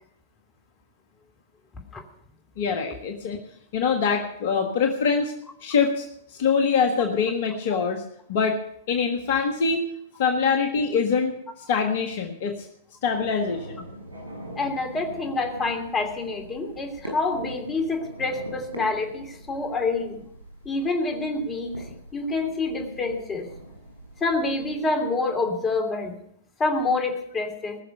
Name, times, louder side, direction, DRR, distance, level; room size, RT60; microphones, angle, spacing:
voice 1, 2.6-3.4 3.7-5.3 5.6-6.1 6.4-8.0 8.3-8.6 8.9-9.8 10.2-11.3 11.7-12.5 13.0-13.8, left 5 dB, 55° left, 3 dB, 1.6 m, -24 dB
sound 1, 13.0-24.7, right 1 dB, 85° right, 7.1 m, -43 dB
voice 2, 14.6-20.2 20.6-21.8 22.1-23.5 24.2-26.2 26.6-27.8, left 3 dB, 20° left, 3 dB, 3.1 m, -27 dB
20.5 x 6.8 x 6.7 m, 0.73 s
figure-of-eight pair, 105°, 0 cm